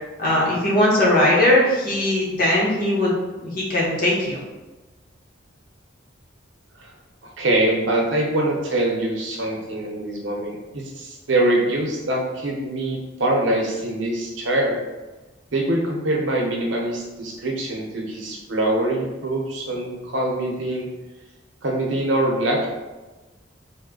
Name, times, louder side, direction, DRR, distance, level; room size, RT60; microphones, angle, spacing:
voice 1, 0.2-3.1 3.4-4.4, left 1 dB, 50° left, -6 dB, 1.0 m, -19 dB
voice 2, 7.2-14.8 15.5-20.9 21.6-22.7, right 1 dB, 90° right, -1 dB, 0.8 m, -24 dB
3.1 x 2.1 x 3.7 m, 1.1 s
head